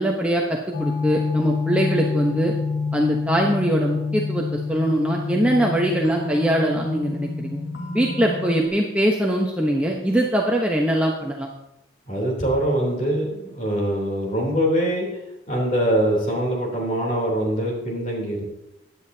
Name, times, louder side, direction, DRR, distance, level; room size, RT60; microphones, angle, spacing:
voice 1, 0.0-2.5 2.9-7.6 7.9-11.5, right 1 dB, 5° right, -1 dB, 0.9 m, -22 dB
sound 1, 0.7-8.7, left 4 dB, 70° left, 1.6 m, -27 dB
voice 2, 12.1-15.1 15.5-18.4, right 1 dB, 40° left, -1 dB, 3.2 m, -23 dB
16.0 x 10.0 x 2.8 m, 0.89 s
head